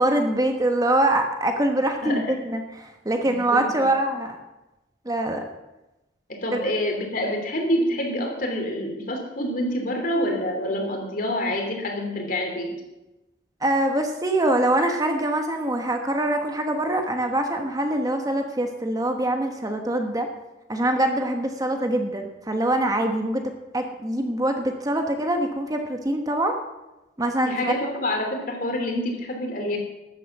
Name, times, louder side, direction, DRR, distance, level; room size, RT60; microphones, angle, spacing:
voice 1, 0.0-2.6 3.0-4.4 5.0-5.4 6.5-6.6 13.6-20.3 20.7-23.4 23.7-26.5 27.2-27.6, right 1 dB, 20° right, 4 dB, 1.2 m, -24 dB
voice 2, 3.2-3.9 6.3-12.7 27.4-29.8, left 1 dB, 50° left, 2 dB, 3.1 m, -27 dB
13.0 x 9.0 x 7.3 m, 1.0 s
head